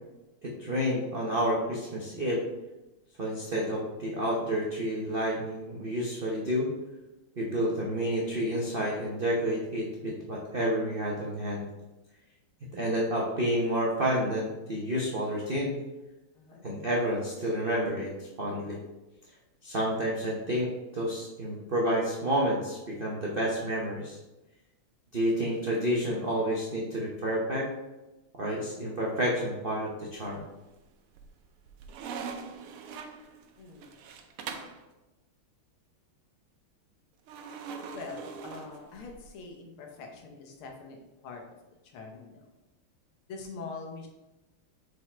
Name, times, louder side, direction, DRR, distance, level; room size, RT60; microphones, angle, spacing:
voice 1, 0.4-2.4 3.2-6.7 7.4-11.7 12.7-15.8 16.6-18.8 19.6-24.2 25.1-27.7 28.3-30.4, equal, 60° right, -3 dB, 0.5 m, -30 dB
voice 2, 7.5-7.9 16.4-16.7 33.6-33.9 37.9-41.4 41.8-42.4 43.3-44.1, left 4 dB, 80° left, 2 dB, 1.8 m, -44 dB
sound 1, 30.1-30.7 31.1-34.8 37.3-39.3, right 5 dB, 85° right, 1.6 m, -42 dB
4.8 x 4.7 x 4.4 m, 1.0 s
omnidirectional pair, 2.4 m